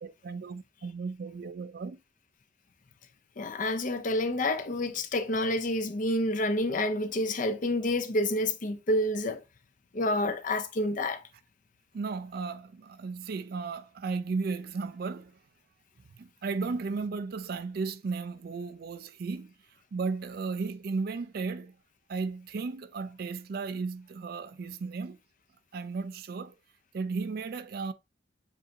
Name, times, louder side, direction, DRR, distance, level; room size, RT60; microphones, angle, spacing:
voice 1, 0.0-2.0 11.9-15.4 16.2-19.5 19.9-21.8 22.1-25.2 25.7-26.6 26.9-27.9, right 4 dB, 50° right, 0.4 m, -35 dB
voice 2, 3.4-9.4 9.9-11.2, left 1 dB, 45° left, 0.6 m, -28 dB
7.2 x 2.6 x 2.8 m
head